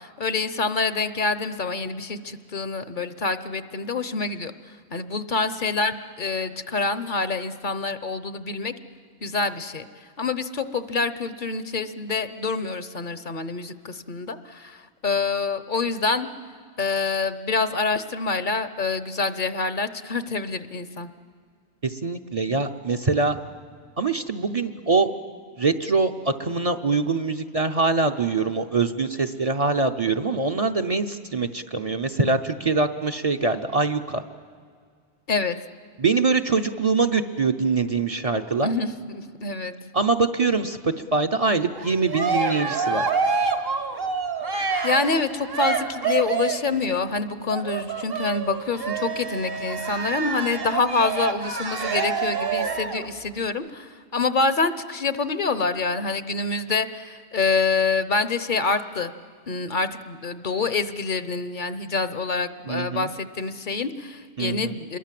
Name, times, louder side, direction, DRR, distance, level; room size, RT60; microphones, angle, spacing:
voice 1, 0.0-4.5 4.9-8.7 9.2-9.9 10.2-16.3 16.8-21.1 35.3-35.6 38.6-39.7 44.8-59.1 59.5-65.0, left 4 dB, 50° left, 12 dB, 0.9 m, -26 dB
voice 2, 21.8-23.4 24.0-25.1 25.6-34.2 36.0-38.7 39.9-43.1 62.7-63.1 64.4-64.8, right 4 dB, 40° right, 6 dB, 0.7 m, -23 dB
Cheering, 41.7-46.7 47.5-53.1, right 5 dB, 60° right, 1.6 m, -27 dB
27.0 x 22.5 x 7.6 m, 2.1 s
omnidirectional pair, 1.1 m